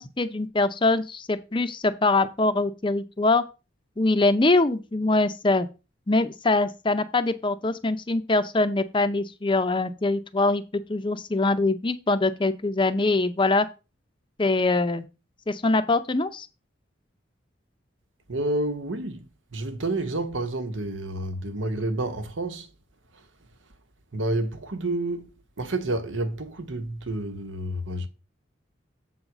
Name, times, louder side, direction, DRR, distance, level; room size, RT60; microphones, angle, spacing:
voice 1, 0.0-3.4 4.0-5.7 6.1-13.7 14.4-15.0 15.5-16.5, left 2 dB, 25° left, 0.6 m, -23 dB
voice 2, 18.3-19.2 19.5-22.7 24.1-25.3 25.6-28.1, right 2 dB, 80° right, 1.1 m, -29 dB
7.6 x 4.0 x 5.9 m
head